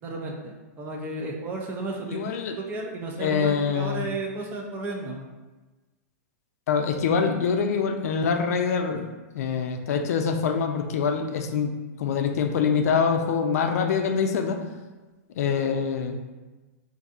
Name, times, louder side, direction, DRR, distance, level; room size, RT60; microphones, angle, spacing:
voice 1, 0.0-5.3, right 2 dB, 20° right, 1 dB, 0.4 m, -33 dB
voice 2, 2.1-2.5 3.2-4.1 6.7-9.1 9.3-11.7 12.0-14.6 15.4-16.3, left 6 dB, 70° left, 5 dB, 0.4 m, -25 dB
4.0 x 2.6 x 2.4 m, 1.2 s
hypercardioid pair, 145°, 9 cm